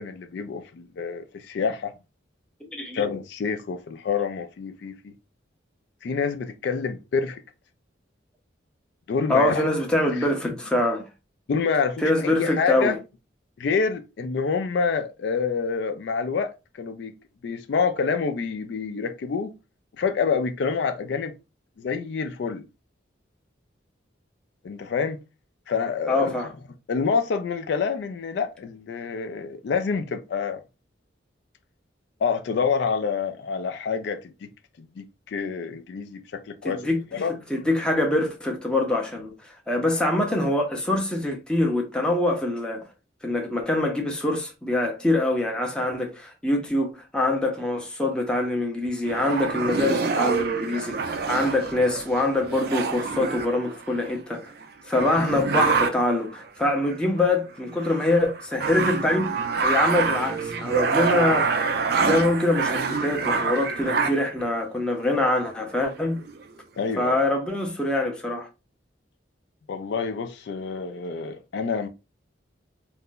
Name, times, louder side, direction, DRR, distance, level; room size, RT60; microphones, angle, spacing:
voice 1, 0.0-1.9 2.9-5.1 6.0-7.4 9.1-9.7 10.1-10.3 11.5-13.0 13.6-17.1 17.4-19.5 20.0-21.3 21.8-22.6 24.6-25.2 25.7-26.3 26.9-30.6 32.2-34.5 34.8-37.7 66.8-67.2 69.7-71.9, left 5 dB, 65° left, 0.3 m, -27 dB
voice 2, 2.7-3.0 9.3-11.1 12.0-13.0 26.1-26.5 36.6-37.0 37.5-39.3 39.7-42.8 43.2-54.4 54.9-59.3 59.6-61.5 62.0-66.2 67.0-68.5, left 1 dB, 5° left, 0.5 m, -24 dB
sound 1, 49.1-54.1 54.6-54.7 54.9-56.2 56.9-57.3 57.7-64.4 65.2-65.3 65.7-66.4, right 4 dB, 50° right, 0.4 m, -26 dB
2.5 x 2.1 x 3.6 m
head